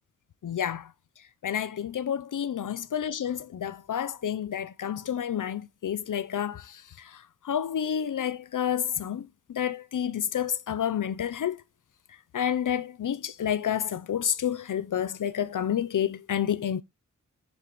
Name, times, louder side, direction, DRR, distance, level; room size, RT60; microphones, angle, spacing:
voice 1, 0.4-0.9 1.4-11.6 12.3-16.8, left 9 dB, 80° left, 0.6 m, -29 dB
9.5 x 7.2 x 3.0 m
wide cardioid pair, 85°, 30 cm